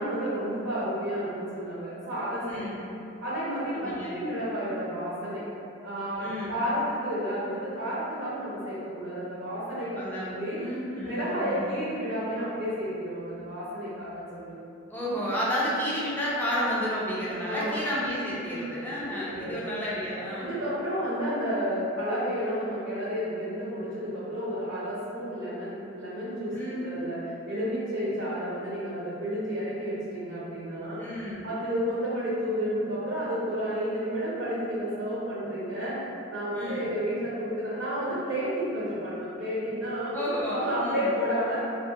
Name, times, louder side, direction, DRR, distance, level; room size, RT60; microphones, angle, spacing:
voice 1, 0.0-2.8 3.2-5.4 5.8-10.6 11.0-14.5 17.5-17.8 18.5-18.6 19.1-19.6 20.3-31.0 31.4-41.6, equal, 75° right, -10 dB, 0.8 m, -31 dB
voice 2, 2.5-2.8 3.8-4.2 6.2-6.6 10.0-11.7 14.9-20.6 26.5-26.9 31.0-31.5 36.5-36.9 40.1-41.0, equal, 10° left, -8 dB, 0.4 m, -31 dB
2.3 x 2.1 x 2.7 m, 2.7 s
head